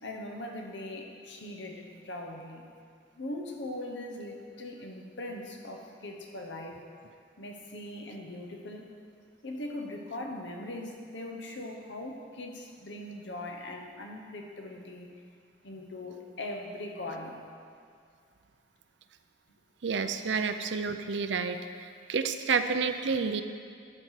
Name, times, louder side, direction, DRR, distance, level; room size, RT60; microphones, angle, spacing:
voice 1, 0.0-2.6 3.2-6.8 7.4-8.9 9.4-15.1 15.6-17.5, left 1 dB, 70° left, 2 dB, 1.1 m, -40 dB
voice 2, 19.8-21.6 22.1-23.4, right 5 dB, 70° right, 9 dB, 0.5 m, -29 dB
12.0 x 4.7 x 5.7 m, 2.3 s
head